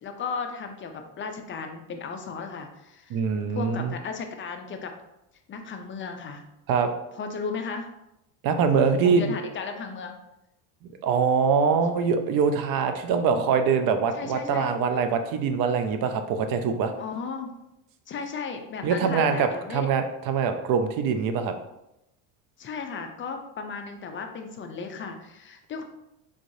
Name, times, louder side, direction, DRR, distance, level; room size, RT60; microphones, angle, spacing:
voice 1, 0.0-3.2 3.5-4.9 5.5-6.5 7.1-7.9 9.0-10.1 13.1-13.5 14.1-14.7 17.0-17.5 18.1-19.9 22.6-25.8, left 5 dB, 30° left, 5 dB, 0.4 m, -35 dB
voice 2, 3.1-3.9 6.7-6.9 8.4-9.3 11.0-16.9 18.8-21.5, right 6 dB, 50° right, 7 dB, 0.6 m, -23 dB
3.7 x 3.2 x 2.6 m, 0.87 s
supercardioid pair, 100°, 44 cm